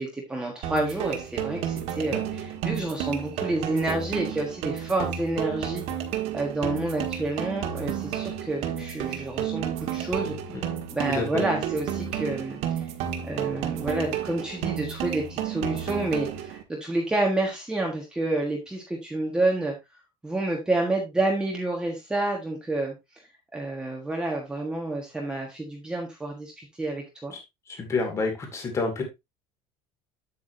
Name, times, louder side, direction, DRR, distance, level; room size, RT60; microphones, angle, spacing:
voice 1, 0.0-5.8 6.3-10.4 10.9-12.9 13.2-22.9 23.5-27.3, right 2 dB, 5° right, -1 dB, 1.4 m, -29 dB
sound 1, 0.6-16.6, right 9 dB, 55° right, 1.6 m, -31 dB
voice 2, 27.8-29.0, left 3 dB, 20° left, 4 dB, 2.4 m, -27 dB
8.6 x 8.1 x 2.7 m, 0.21 s
cardioid pair, 175°, 13 cm